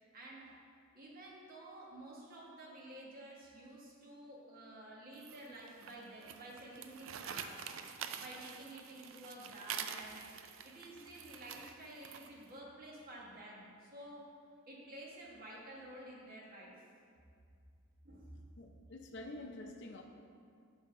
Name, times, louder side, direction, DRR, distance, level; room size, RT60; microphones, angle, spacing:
voice 1, 0.1-0.5 0.9-7.8 8.2-10.3 10.6-14.2 14.7-16.9 18.0-18.4, right 1 dB, 45° right, -3 dB, 1.3 m, -51 dB
sound 1, 5.2-12.5, right 8 dB, 70° right, 0.4 m, -47 dB
voice 2, 18.6-20.0, left 2 dB, 60° left, 2 dB, 0.5 m, -48 dB
7.1 x 3.4 x 5.4 m, 2.2 s
head